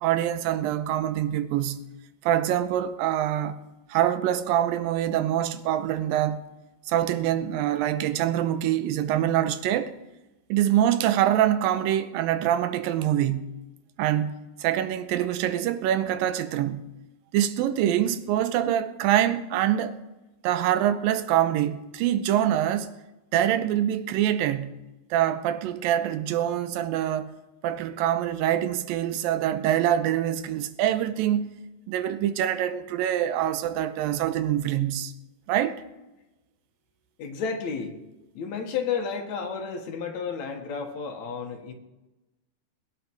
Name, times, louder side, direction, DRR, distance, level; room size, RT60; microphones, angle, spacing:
voice 1, 0.0-1.9 2.2-3.6 3.9-6.4 6.9-10.0 10.5-13.6 14.0-16.9 17.3-20.0 20.4-22.9 23.3-24.8 25.1-27.3 27.6-31.5 31.9-35.1 35.5-35.8, right 11 dB, 80° right, 2.3 m, -25 dB
voice 2, 37.2-38.0 38.4-41.7, left 6 dB, 60° left, 2.4 m, -31 dB
21.0 x 9.0 x 4.6 m
omnidirectional pair, 4.4 m